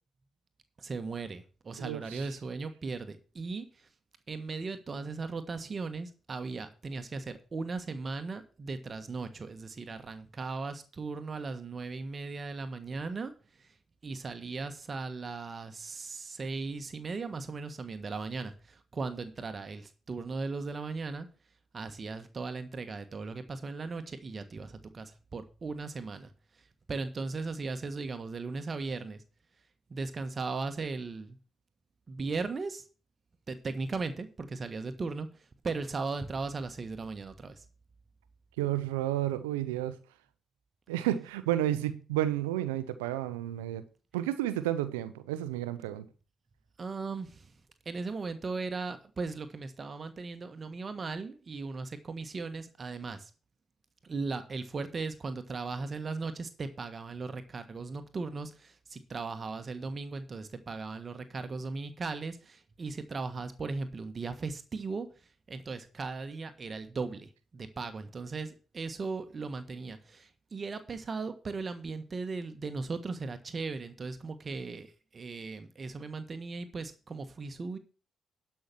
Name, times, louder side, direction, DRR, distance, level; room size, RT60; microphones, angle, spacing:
voice 1, 0.8-3.9 4.3-13.8 14.0-21.3 21.7-29.2 29.9-31.4 32.1-32.8 33.5-37.6 46.8-47.6 47.8-53.3 54.0-77.8, right 4 dB, 45° right, 1.4 m, -37 dB
voice 2, 1.8-2.2 38.6-40.0 40.9-43.8 44.1-46.1, right 13 dB, 90° right, 0.7 m, -31 dB
12.0 x 5.9 x 6.0 m
hypercardioid pair, 40°, 0 cm